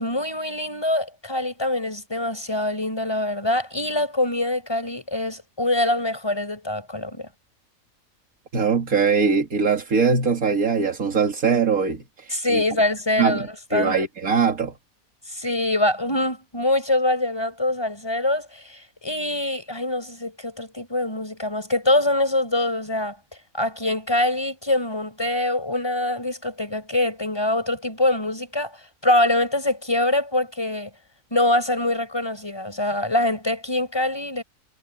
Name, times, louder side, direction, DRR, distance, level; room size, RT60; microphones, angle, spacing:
voice 1, 0.0-7.3 12.3-13.5 13.7-14.0 15.3-23.2 23.5-30.9 31.3-34.4, left 1 dB, 15° left, 6.3 m, -24 dB
voice 2, 8.5-12.6 13.2-14.7, right 5 dB, 85° right, 2.6 m, -22 dB
omnidirectional pair, 1.4 m